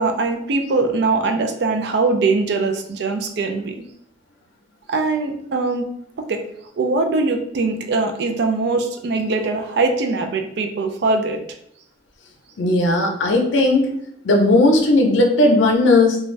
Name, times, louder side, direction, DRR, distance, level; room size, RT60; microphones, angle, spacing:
voice 1, 0.0-3.7 4.9-5.9 6.2-6.4 6.8-11.4, right 3 dB, 60° right, 5 dB, 0.4 m, -21 dB
voice 2, 12.6-13.9 14.2-16.2, left 2 dB, 85° left, 2 dB, 0.5 m, -16 dB
2.5 x 2.3 x 3.1 m, 0.71 s
head